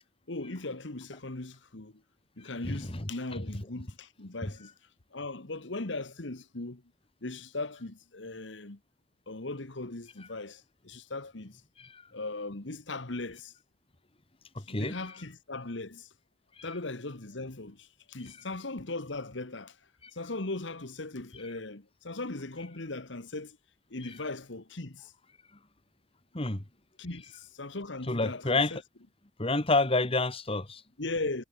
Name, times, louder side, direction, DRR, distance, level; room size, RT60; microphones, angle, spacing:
voice 1, 0.3-1.9 2.4-4.7 5.1-6.8 7.2-8.8 9.3-11.6 12.1-13.5 14.7-16.1 16.6-19.8 20.1-23.6 23.9-25.1 27.0-28.8 31.0-31.4, left 2 dB, 75° left, 1.7 m, -38 dB
voice 2, 2.6-3.1 11.8-12.1 14.6-15.0 16.6-16.7 24.0-24.1 26.3-26.6 28.1-28.7 29.4-30.8, left 2 dB, 30° left, 1.9 m, -29 dB
head